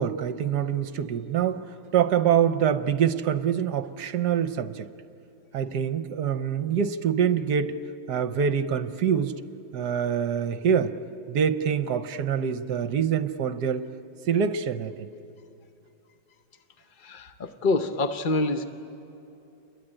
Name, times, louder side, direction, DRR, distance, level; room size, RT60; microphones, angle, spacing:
voice 1, 0.0-1.6 1.9-4.9 5.5-7.7 8.1-9.3 9.7-10.9 11.3-13.8 14.3-15.1, right 8 dB, 70° right, 10 dB, 1.3 m, -25 dB
voice 2, 17.0-18.7, left 2 dB, 45° left, 8 dB, 0.6 m, -26 dB
29.0 x 22.5 x 8.9 m, 2.8 s
omnidirectional pair, 1.9 m